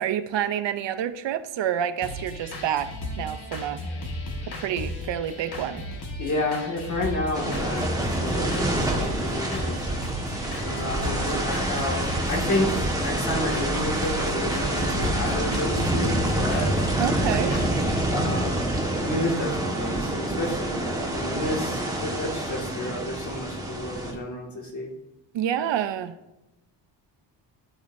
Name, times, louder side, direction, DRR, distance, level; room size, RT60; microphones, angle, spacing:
voice 1, 0.0-3.8 4.5-5.8 17.0-17.6 25.3-26.2, right 10 dB, 70° right, 11 dB, 0.7 m, -28 dB
sound 1, 2.0-18.0, left 1 dB, 55° left, 1.9 m, -35 dB
voice 2, 6.2-9.8 10.6-16.7 18.1-18.7 19.0-24.9, left 1 dB, 40° left, -1 dB, 2.1 m, -30 dB
sound 2, 7.3-24.1, right 1 dB, 10° right, 1.6 m, -27 dB
12.0 x 8.3 x 2.7 m, 0.93 s
cardioid pair, 130°, 45 cm